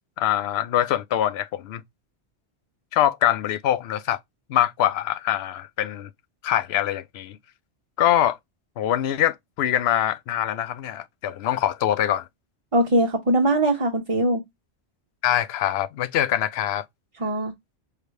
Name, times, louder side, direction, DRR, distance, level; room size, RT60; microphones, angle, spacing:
voice 1, 0.2-1.8 2.9-4.2 4.5-6.1 6.4-7.4 8.0-8.4 8.8-12.3 15.2-16.9, left 11 dB, 70° left, 0.8 m, -23 dB
voice 2, 12.7-14.4 17.2-17.5, right 1 dB, 35° right, 0.7 m, -21 dB
4.9 x 3.2 x 2.7 m
omnidirectional pair, 1.2 m